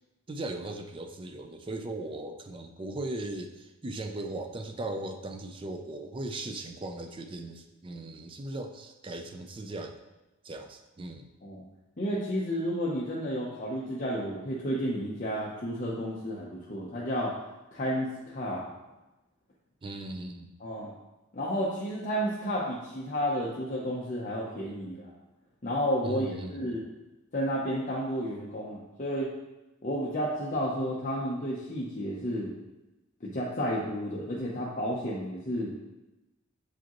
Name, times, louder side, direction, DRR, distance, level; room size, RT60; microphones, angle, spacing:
voice 1, 0.3-10.0 10.4-11.3 19.8-20.5 26.0-26.5, right 2 dB, 25° right, 6 dB, 0.4 m, -38 dB
voice 2, 12.0-17.3 17.7-18.7 20.6-20.9 21.3-25.1 25.6-26.8 27.3-29.3 29.8-32.5 33.2-35.8, equal, 40° left, -5 dB, 0.7 m, -31 dB
6.8 x 5.0 x 3.0 m, 1.0 s
head